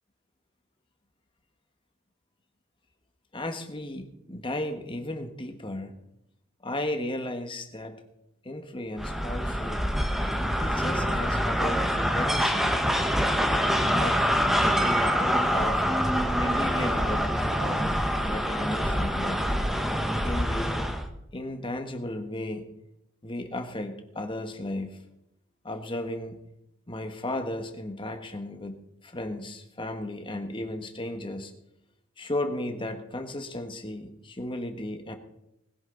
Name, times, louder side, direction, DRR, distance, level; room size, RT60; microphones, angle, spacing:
voice 1, 3.3-5.9 6.6-8.0 8.4-9.9 10.6-12.7 13.8-14.3 14.8-15.8 16.3-17.9 18.2-19.4 20.2-20.9 21.3-22.7 23.2-25.0 25.6-26.4 26.9-28.7 29.0-31.5 32.2-35.2, left 1 dB, 25° left, 6 dB, 1.5 m, -35 dB
sound 1, 9.0-21.1, equal, ahead, 1.2 m, -25 dB
20.5 x 10.5 x 4.0 m, 0.84 s
head